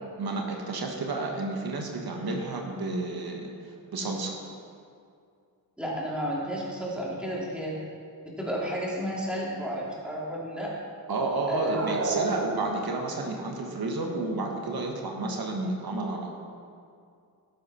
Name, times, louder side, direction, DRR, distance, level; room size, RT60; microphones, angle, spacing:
voice 1, 0.2-4.4 11.1-16.3, right 2 dB, 80° right, 1 dB, 1.4 m, -31 dB
voice 2, 5.8-7.8 8.2-10.7 11.5-11.8, equal, 5° right, -6 dB, 3.0 m, -32 dB
sound 1, 11.5-13.1, right 3 dB, 40° right, 0.9 m, -32 dB
12.0 x 10.0 x 4.3 m, 2.4 s
wide cardioid pair, 100°, 36 cm